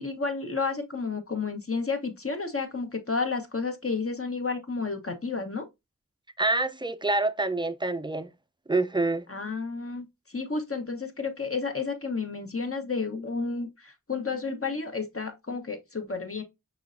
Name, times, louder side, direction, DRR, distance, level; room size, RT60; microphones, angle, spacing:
voice 1, 0.0-5.6 9.3-16.4, left 4 dB, 40° left, 1.1 m, -31 dB
voice 2, 6.4-8.3 8.7-9.2, right 2 dB, 15° right, 0.4 m, -26 dB
6.0 x 3.2 x 2.5 m
wide cardioid pair, 45°, 34 cm